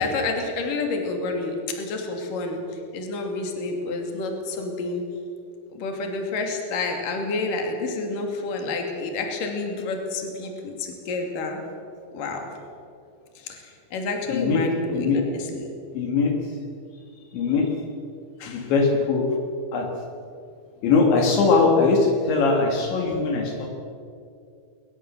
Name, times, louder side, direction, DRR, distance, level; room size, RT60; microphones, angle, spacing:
voice 1, 0.0-2.6 2.9-5.0 5.7-11.6 12.1-12.4 13.4-15.7 18.4-18.7, left 3 dB, 50° left, 3 dB, 3.9 m, -29 dB
voice 2, 14.3-14.6 14.9-15.2 15.9-16.4 17.3-17.7 18.5-19.3 19.7-19.9 20.8-23.7, left 4 dB, 70° left, 2 dB, 4.1 m, -21 dB
21.0 x 20.5 x 7.5 m, 2.4 s
omnidirectional pair, 5.5 m